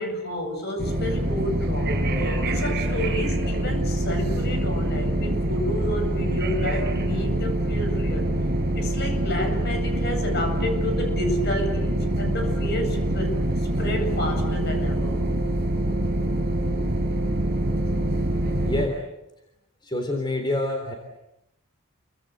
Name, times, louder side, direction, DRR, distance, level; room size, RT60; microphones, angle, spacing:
voice 1, 0.0-8.3 8.7-15.2, left 1 dB, 50° left, 5 dB, 8.0 m, -31 dB
sound 1, 0.8-18.9, right 1 dB, 45° right, 6.2 m, -25 dB
voice 2, 18.6-19.0 19.8-20.9, left 1 dB, 20° left, 3 dB, 3.7 m, -26 dB
29.5 x 25.0 x 8.1 m, 0.88 s
head